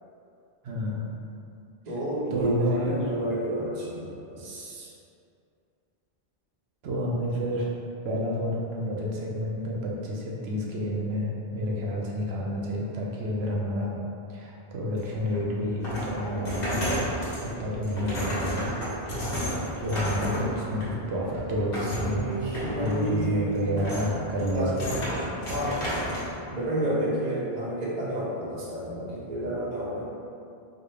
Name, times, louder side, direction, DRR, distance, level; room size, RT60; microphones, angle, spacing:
voice 1, 0.6-1.1 2.3-3.1 6.8-7.7 8.0-14.0 14.3-17.1 17.4-18.7 19.1-19.4 19.8-22.3 22.8-24.7 25.1-25.3, equal, 85° right, -3 dB, 0.9 m, -30 dB
voice 2, 1.9-4.9 21.2-21.4 22.0-23.6 24.5-25.1 25.5-25.8 26.5-30.0, right 1 dB, 45° right, -6 dB, 0.8 m, -30 dB
sound 1, 15.0-26.3, equal, 65° left, 1.1 m, -32 dB
4.3 x 2.1 x 3.1 m, 2.5 s
omnidirectional pair, 1.0 m